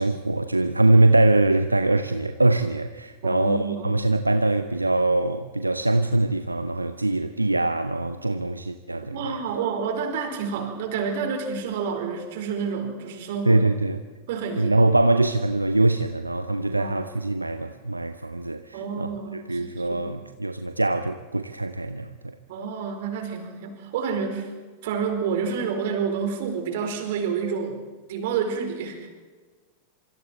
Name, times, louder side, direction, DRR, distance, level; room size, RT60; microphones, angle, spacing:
voice 1, 0.0-9.3 13.5-14.0 14.6-19.1 19.3-22.3, right 2 dB, 85° right, 0.8 m, -23 dB
voice 2, 3.2-4.0 9.1-13.6 14.3-14.8 16.6-17.1 18.7-20.1 22.5-24.5 24.8-27.8 28.1-29.1, right 6 dB, 55° right, 4.6 m, -29 dB
27.0 x 25.0 x 4.5 m
figure-of-eight pair, 90°, 0 cm